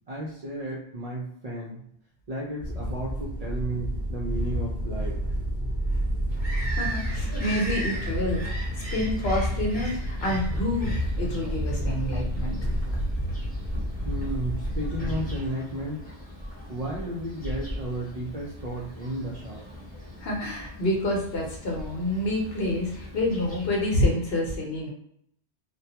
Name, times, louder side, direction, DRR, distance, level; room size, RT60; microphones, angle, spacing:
voice 1, 0.1-1.8 2.3-5.2 14.0-16.0 16.7-19.6, right 1 dB, 55° right, -5 dB, 0.4 m, -33 dB
sound 1, 2.6-15.5, equal, 15° right, 0.8 m, -30 dB
Bird vocalization bird call bird song, 6.3-24.0, equal, 10° left, 0.9 m, -39 dB
voice 2, 6.7-8.4 8.8-12.6 12.9-13.0 20.2-24.9, left 1 dB, 65° left, -2 dB, 1.0 m, -28 dB
2.2 x 2.2 x 2.7 m, 0.69 s
omnidirectional pair, 1.1 m